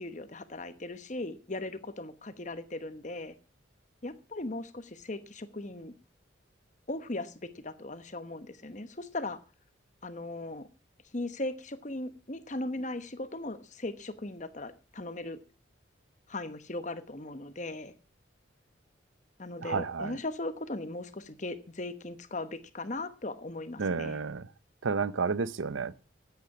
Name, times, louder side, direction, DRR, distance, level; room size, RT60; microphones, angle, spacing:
voice 1, 0.0-3.3 4.0-5.9 6.9-9.4 10.0-10.7 11.1-15.4 16.3-17.9 19.4-24.2, left 2 dB, 40° left, 1.1 m, -38 dB
voice 2, 19.6-20.2 23.8-24.5 24.8-25.9, right 5 dB, 85° right, 0.7 m, -31 dB
14.5 x 9.4 x 5.9 m
head